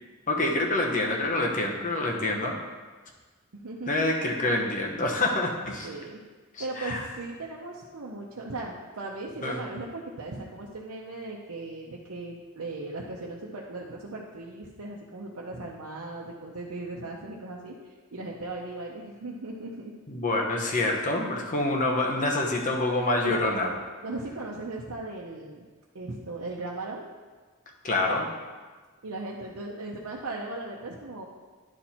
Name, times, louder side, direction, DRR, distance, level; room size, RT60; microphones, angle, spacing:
voice 1, 0.3-2.5 3.9-5.9 6.5-7.1 9.4-9.6 20.1-23.7 27.8-28.3, left 2 dB, 35° left, 1 dB, 1.0 m, -26 dB
voice 2, 3.5-4.1 5.7-6.2 6.6-19.9 23.2-23.8 24.0-25.7 25.9-27.1 29.0-31.2, right 2 dB, 80° right, -3 dB, 0.8 m, -38 dB
11.0 x 4.3 x 4.3 m, 1.4 s
head